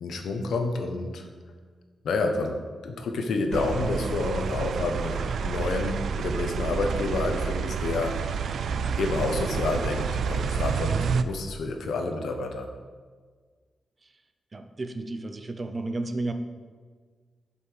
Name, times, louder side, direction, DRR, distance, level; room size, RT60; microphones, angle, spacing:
voice 1, 0.0-1.2 2.0-8.1 9.0-12.7, left 3 dB, 85° left, 5 dB, 1.0 m, -29 dB
sound 1, 3.5-11.2, right 6 dB, 70° right, 0.4 m, -29 dB
voice 2, 14.5-16.3, right 2 dB, 25° right, 7 dB, 0.6 m, -32 dB
7.9 x 5.5 x 6.3 m, 1.5 s
wide cardioid pair, 155°, 0 cm